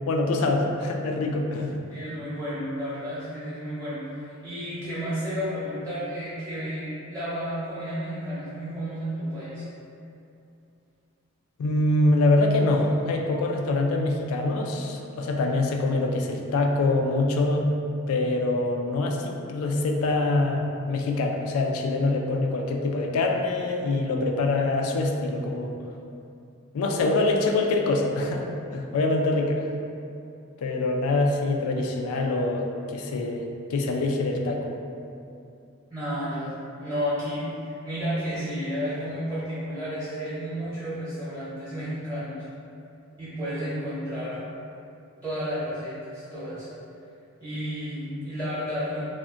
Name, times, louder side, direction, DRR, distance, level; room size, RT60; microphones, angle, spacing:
voice 1, 0.1-1.8 11.6-17.7 18.1-25.7 26.7-29.7 30.6-34.7, left 2 dB, 75° left, 2 dB, 0.3 m, -24 dB
voice 2, 1.9-9.7 35.9-36.5 36.8-42.5 43.2-44.4 45.2-46.7 47.4-49.0, equal, 15° right, -12 dB, 0.7 m, -32 dB
2.4 x 2.1 x 3.6 m, 2.6 s
head